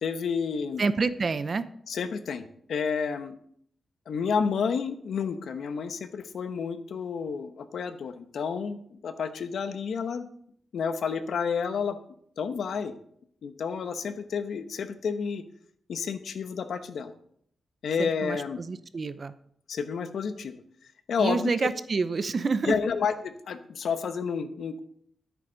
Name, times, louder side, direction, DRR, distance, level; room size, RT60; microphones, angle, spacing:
voice 1, 0.0-0.8 1.9-2.4 2.7-3.4 4.1-10.3 10.7-12.0 12.4-12.9 13.4-15.4 15.9-17.1 17.8-18.6 19.7-20.6 21.1-21.5 22.6-24.8, left 6 dB, 75° left, 10 dB, 1.0 m, -30 dB
voice 2, 0.8-1.7 18.0-19.3 21.2-22.8, right 4 dB, 45° right, 13 dB, 0.7 m, -28 dB
13.5 x 8.3 x 4.0 m, 0.66 s
wide cardioid pair, 110°, 0 cm